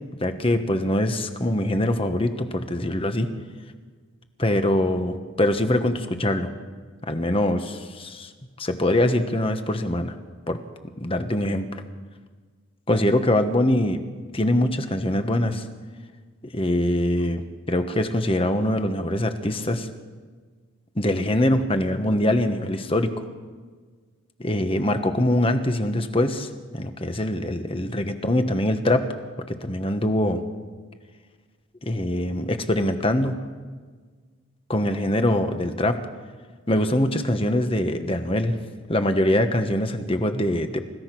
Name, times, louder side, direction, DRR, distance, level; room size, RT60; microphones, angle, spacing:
voice 1, 0.2-3.3 4.4-6.5 7.0-8.3 8.6-10.1 10.5-10.6 11.0-11.8 12.9-14.0 14.3-15.6 16.5-17.4 17.7-19.9 20.9-23.2 24.4-29.0 29.5-30.4 31.8-33.3 34.7-36.0 36.7-38.6 38.9-40.8, left 1 dB, 25° left, 8 dB, 1.3 m, -23 dB
29.5 x 16.0 x 6.1 m, 1.5 s
head